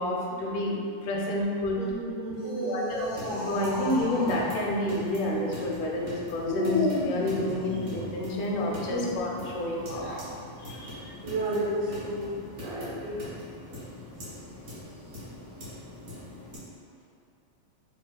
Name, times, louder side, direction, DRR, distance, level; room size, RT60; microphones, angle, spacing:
voice 1, 0.0-1.8 2.6-10.2 10.6-11.1, left 1 dB, 85° left, -2 dB, 2.0 m, -30 dB
voice 2, 1.8-2.8 8.9-9.1 11.2-12.3 12.6-13.2, right 1 dB, 80° right, -8 dB, 1.6 m, -32 dB
sound 1, 2.2-4.5 6.4-8.2 9.8-10.3, left 2 dB, 70° left, 1.1 m, -32 dB
sound 2, 2.9-16.6, left 1 dB, 60° right, 1.3 m, -43 dB
4.5 x 2.3 x 2.2 m, 2.4 s
omnidirectional pair, 3.4 m